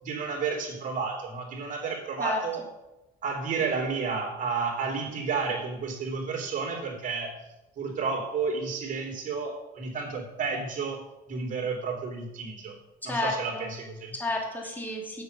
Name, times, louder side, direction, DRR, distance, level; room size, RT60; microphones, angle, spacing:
voice 1, 0.0-2.6 3.2-7.4 7.8-11.0 11.3-12.8 13.0-14.1, right 5 dB, 50° right, 0 dB, 3.2 m, -31 dB
voice 2, 13.0-13.7 14.1-15.2, left 2 dB, 10° left, -1 dB, 2.7 m, -31 dB
7.9 x 7.8 x 6.7 m, 0.99 s
cardioid pair, 110°, 17 cm